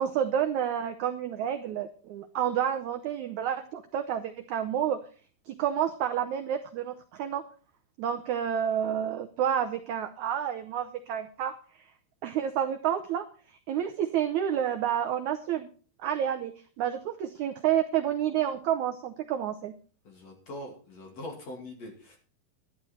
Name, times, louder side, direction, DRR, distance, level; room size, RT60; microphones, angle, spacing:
voice 1, 0.0-5.0 5.5-7.4 8.0-11.5 12.2-13.2 13.7-15.7 16.0-19.7, right 9 dB, 90° right, 6 dB, 1.6 m, -29 dB
voice 2, 20.0-22.2, left 1 dB, 45° left, 2 dB, 3.2 m, -42 dB
12.0 x 11.5 x 4.3 m, 0.39 s
omnidirectional pair, 4.6 m